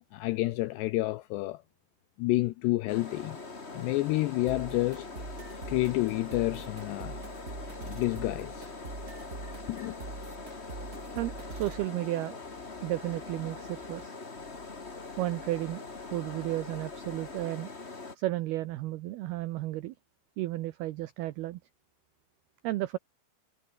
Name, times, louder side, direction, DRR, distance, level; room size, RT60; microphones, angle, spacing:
voice 1, 0.1-1.6 2.2-3.4 3.7-5.1 5.7-7.2 7.8-8.7 9.7-10.0, left 19 dB, 85° left, 2.4 m, -29 dB
sound 1, 2.9-18.2, left 3 dB, 40° left, 0.8 m, -43 dB
sound 2, 4.5-11.9, right 3 dB, 20° right, 2.9 m, -43 dB
voice 2, 11.2-12.4 12.8-14.2 15.2-17.7 18.2-19.9 20.4-21.6 22.6-23.0, right 16 dB, 85° right, 2.2 m, -33 dB
sound 3, 12.4-14.1 14.4-17.5, left 9 dB, 65° left, 5.0 m, -57 dB
omnidirectional pair, 5.6 m